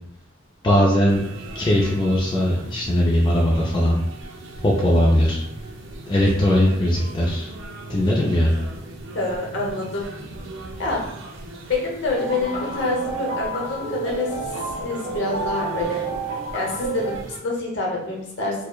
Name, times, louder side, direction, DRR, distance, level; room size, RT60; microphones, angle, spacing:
voice 1, 0.6-1.2 1.5-4.0 4.6-5.4 6.1-7.5 7.9-8.5, equal, 20° left, -4 dB, 0.4 m, -19 dB
sound 1, 1.1-17.4, right 2 dB, 65° right, 0.5 m, -38 dB
voice 2, 9.1-10.1 10.8-11.1 11.7-14.3 14.8-16.0 16.5-17.2 17.4-18.5, left 3 dB, 60° left, -2 dB, 0.8 m, -26 dB
sound 2, 12.1-17.1, right 3 dB, 20° right, 1.2 m, -29 dB
4.4 x 2.0 x 2.2 m, 0.76 s
head